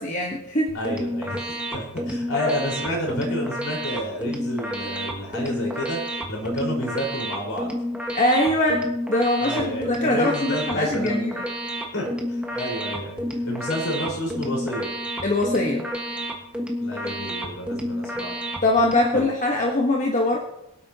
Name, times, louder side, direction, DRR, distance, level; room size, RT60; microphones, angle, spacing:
voice 1, 0.0-0.7 8.1-11.4 15.2-15.9 18.6-20.4, left 1 dB, 35° left, -1 dB, 1.3 m, -22 dB
voice 2, 0.7-1.4 1.7-7.7 9.4-11.3 11.9-14.9 16.8-18.4 19.1-19.3, equal, 65° left, -2 dB, 4.9 m, -30 dB
sound 1, 0.7-19.2, equal, 5° right, 1.5 m, -30 dB
24.5 x 8.8 x 2.9 m, 0.86 s
head